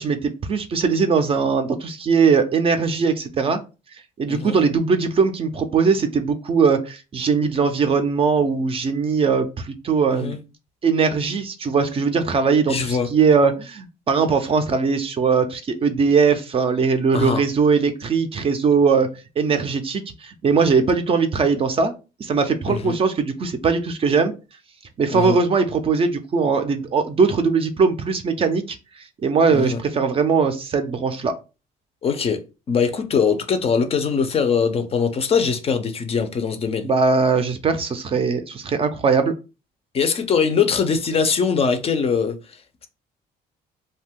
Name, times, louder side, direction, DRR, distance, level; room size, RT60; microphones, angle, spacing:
voice 1, 0.0-3.6 4.2-10.4 10.8-19.1 19.4-21.9 22.2-24.3 25.0-28.8 29.2-31.3 36.8-39.4, right 5 dB, 35° right, 0.4 m, -20 dB
voice 2, 4.3-4.6 10.1-10.4 12.7-13.1 17.1-17.4 22.7-22.9 25.1-25.4 29.5-29.8 32.0-32.4 32.7-36.9 39.9-42.4, left 6 dB, 35° left, 0.4 m, -21 dB
2.6 x 2.2 x 3.4 m
cardioid pair, 110°, 17 cm